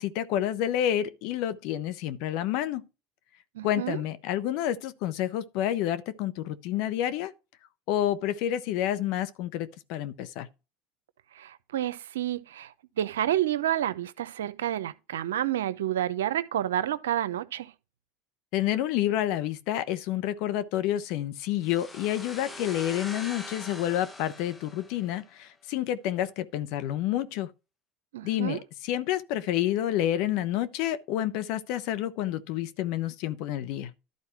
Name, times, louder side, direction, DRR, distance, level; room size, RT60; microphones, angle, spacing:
voice 1, 0.0-2.9 3.6-7.3 7.9-10.5 18.5-27.5 28.2-33.9, left 12 dB, 65° left, 1.0 m, -29 dB
voice 2, 3.5-4.0 11.3-17.7 28.1-28.6, right 12 dB, 85° right, 0.7 m, -29 dB
sound 1, 21.6-25.3, left 2 dB, 15° left, 1.3 m, -43 dB
12.0 x 4.2 x 4.6 m
hypercardioid pair, 90°, 0 cm